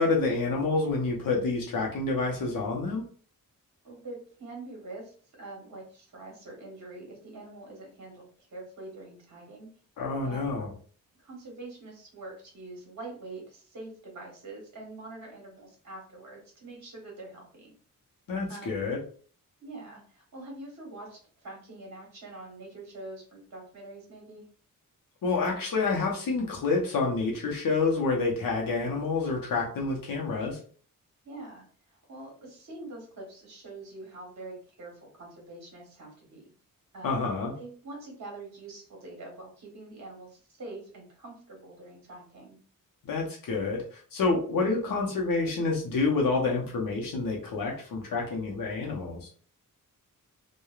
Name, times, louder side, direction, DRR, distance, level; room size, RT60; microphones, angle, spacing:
voice 1, 0.0-3.0 10.0-10.7 18.3-19.0 25.2-30.6 37.0-37.5 43.0-49.3, left 3 dB, 80° left, -1 dB, 0.8 m, -28 dB
voice 2, 3.8-9.7 10.2-10.6 11.2-17.7 18.5-18.9 19.6-24.4 31.2-31.6 32.1-36.5 36.9-37.2 37.6-42.6, right 2 dB, 55° right, -1 dB, 1.2 m, -45 dB
3.0 x 2.3 x 2.3 m, 0.43 s
wide cardioid pair, 145°, 33 cm